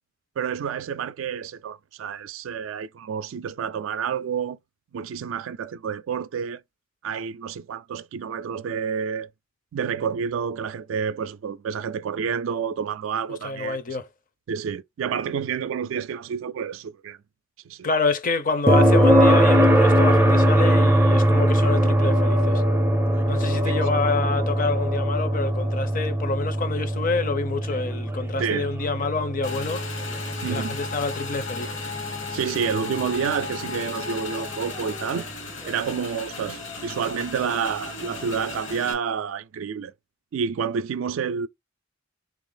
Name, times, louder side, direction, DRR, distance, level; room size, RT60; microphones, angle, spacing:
voice 1, 0.4-4.6 4.9-6.6 7.0-9.3 9.7-14.0 14.5-17.2 17.7-17.9 23.6-23.7 28.4-28.7 30.4-30.8 32.3-35.3 35.6-39.9 40.3-41.5, right 7 dB, 80° right, 0.3 m, -29 dB
voice 2, 13.4-14.1 17.8-22.6 23.3-29.9 30.5-31.7, left 4 dB, 45° left, 0.5 m, -27 dB
sound 1, 18.7-32.5 34.8-34.9, equal, 10° right, 0.4 m, -21 dB
Motorcycle / Engine, 29.4-38.9, left 4 dB, 70° left, 1.1 m, -35 dB
3.3 x 2.4 x 3.8 m
head